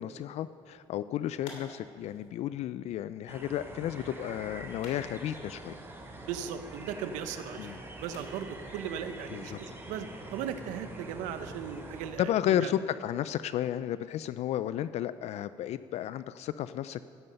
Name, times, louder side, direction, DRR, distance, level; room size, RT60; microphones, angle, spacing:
voice 1, 0.0-5.7 7.6-7.8 9.3-9.6 12.2-17.0, left 11 dB, 60° left, 14 dB, 0.4 m, -33 dB
sound 1, 0.6-10.3, left 3 dB, 80° left, 3.2 m, -56 dB
sound 2, 3.3-12.1, right 2 dB, 20° right, 2.8 m, -45 dB
voice 2, 6.2-7.7 8.0-12.7, right 8 dB, 90° right, 10 dB, 0.9 m, -38 dB
15.0 x 11.0 x 5.3 m, 2.3 s
cardioid pair, 105°, 13 cm